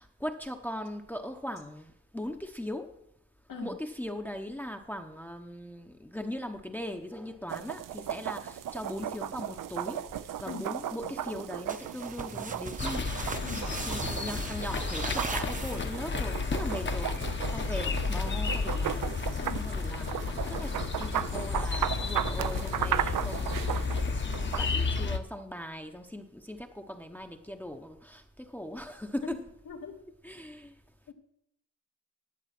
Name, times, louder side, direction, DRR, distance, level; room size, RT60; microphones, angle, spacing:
voice 1, 0.0-3.0 3.6-13.1 13.8-19.1 19.4-29.4 30.2-30.7, left 1 dB, 5° left, 5 dB, 0.8 m, -40 dB
voice 2, 3.5-3.7 10.5-10.7 13.4-13.7 19.4-19.6 20.6-20.7 29.2-29.4 29.7-29.9 31.1-31.2, left 5 dB, 80° left, 1 dB, 2.0 m, -40 dB
sound 1, 7.5-25.1, right 10 dB, 80° right, 0.6 m, -36 dB
sound 2, 11.7-16.2, right 3 dB, 25° right, 0.8 m, -39 dB
sound 3, 12.8-25.2, left 4 dB, 35° left, 0.9 m, -32 dB
11.0 x 8.0 x 5.9 m, 0.80 s
wide cardioid pair, 105°, 32 cm